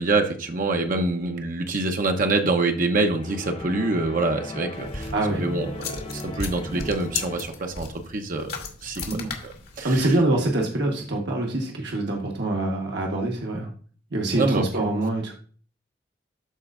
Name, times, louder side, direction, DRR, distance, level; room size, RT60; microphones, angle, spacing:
voice 1, 0.0-5.1 5.4-9.3 9.8-10.1 14.3-14.9, right 2 dB, 45° right, 4 dB, 0.8 m, -26 dB
sound 1, 3.1-7.8, left 1 dB, 30° left, 0.8 m, -37 dB
sound 2, 4.8-10.1, left 5 dB, 60° left, 1.8 m, -36 dB
voice 2, 5.1-5.4 9.1-9.3 9.8-13.7 14.1-15.3, right 2 dB, 65° right, 0 dB, 1.3 m, -25 dB
13.0 x 4.4 x 2.5 m, 0.43 s
head